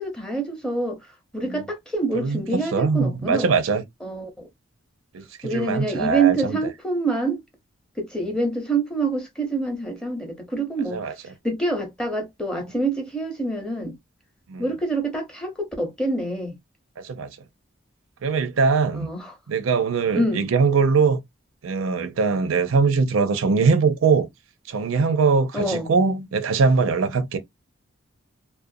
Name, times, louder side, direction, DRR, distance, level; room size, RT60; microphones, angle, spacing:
voice 1, 0.0-3.5 4.0-4.5 5.4-7.4 8.0-14.0 14.6-16.6 18.9-19.3 20.1-20.4 25.5-25.9, right 3 dB, 5° left, 0.6 m, -26 dB
voice 2, 2.1-3.8 5.1-6.6 10.9-11.1 14.5-14.6 17.0-17.3 18.2-19.1 19.5-21.2 21.6-24.3 24.7-27.4, right 4 dB, 75° right, 0.5 m, -21 dB
2.4 x 2.1 x 2.6 m
head